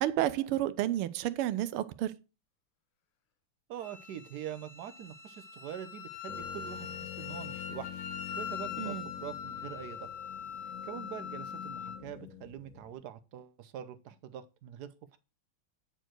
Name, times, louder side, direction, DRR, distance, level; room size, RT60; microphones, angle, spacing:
voice 1, 0.0-2.1 8.8-9.1, right 13 dB, 85° right, 1.5 m, -31 dB
voice 2, 3.7-7.9 8.4-10.1 10.8-15.2, right 10 dB, 70° right, 1.0 m, -44 dB
Wind instrument woodwind instrument, 3.8-12.0, left 8 dB, 80° left, 1.9 m, -42 dB
sound 1, 6.3-12.9, left 10 dB, 60° left, 2.0 m, -47 dB
9.0 x 4.5 x 4.4 m
omnidirectional pair, 2.4 m